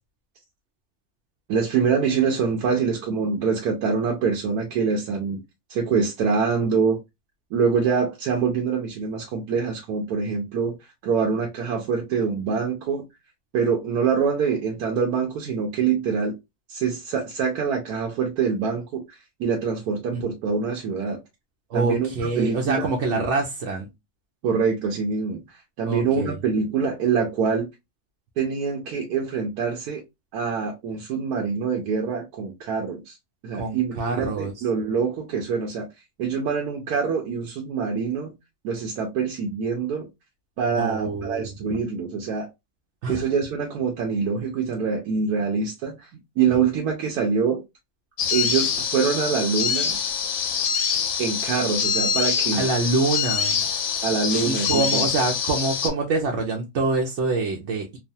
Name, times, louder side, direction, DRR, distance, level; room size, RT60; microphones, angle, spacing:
voice 1, 1.5-5.4 5.7-7.0 7.5-10.7 11.0-13.1 13.5-16.3 16.7-21.2 21.7-23.2 24.4-27.7 28.4-30.0 30.3-33.2 33.4-35.9 36.2-38.3 38.6-40.1 40.6-42.5 43.1-46.1 46.4-47.6 48.3-50.0 51.2-52.7 54.0-55.0, right 5 dB, 85° right, 1.2 m, -25 dB
voice 2, 21.7-23.9 25.9-26.4 33.5-34.5 40.7-41.8 43.0-43.2 52.5-53.6 54.4-58.0, right 3 dB, 65° right, 0.7 m, -25 dB
sound 1, 48.2-55.9, left 7 dB, 65° left, 0.9 m, -25 dB
3.1 x 2.0 x 2.6 m
omnidirectional pair, 1.6 m